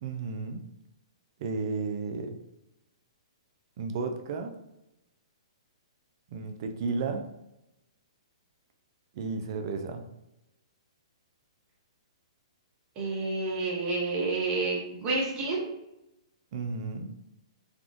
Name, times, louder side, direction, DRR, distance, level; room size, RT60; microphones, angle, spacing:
voice 1, 0.0-0.6 1.4-2.3 3.8-4.5 6.3-7.2 9.1-10.0 16.5-17.1, right 4 dB, 50° right, 5 dB, 0.4 m, -33 dB
voice 2, 13.0-15.6, right 3 dB, 30° right, -3 dB, 0.9 m, -29 dB
3.6 x 2.4 x 2.4 m, 0.89 s
figure-of-eight pair, 120°, 3 cm